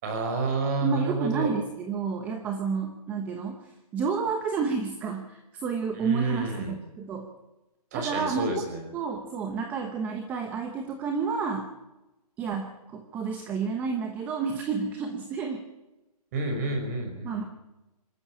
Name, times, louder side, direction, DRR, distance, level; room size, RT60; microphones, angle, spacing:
voice 1, 0.0-1.5 5.9-6.8 7.9-8.9 16.3-17.3, right 2 dB, 25° right, 4 dB, 5.5 m, -29 dB
voice 2, 0.8-7.3 7.9-8.6 8.9-11.7 12.4-15.6 17.2-17.4, right 5 dB, 10° right, 5 dB, 1.0 m, -30 dB
25.5 x 14.0 x 8.7 m, 1.0 s
hypercardioid pair, 170°, 20 cm